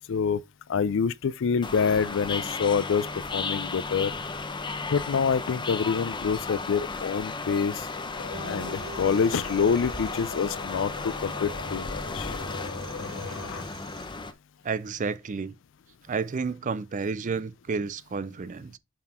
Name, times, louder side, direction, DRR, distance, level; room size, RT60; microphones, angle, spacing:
voice 1, 0.1-0.4 0.7-3.1 3.3-4.1 4.9-7.9 8.4-12.3, left 6 dB, 60° left, 0.4 m, -26 dB
sound 1, 1.6-14.3, left 3 dB, 20° left, 0.6 m, -35 dB
sound 2, 7.9-13.7, left 5 dB, 85° left, 0.8 m, -41 dB
sound 3, 8.3-14.1, right 2 dB, 60° right, 0.7 m, -44 dB
voice 2, 14.6-15.5 16.1-18.8, right 5 dB, 35° right, 0.4 m, -31 dB
7.5 x 4.1 x 4.3 m
head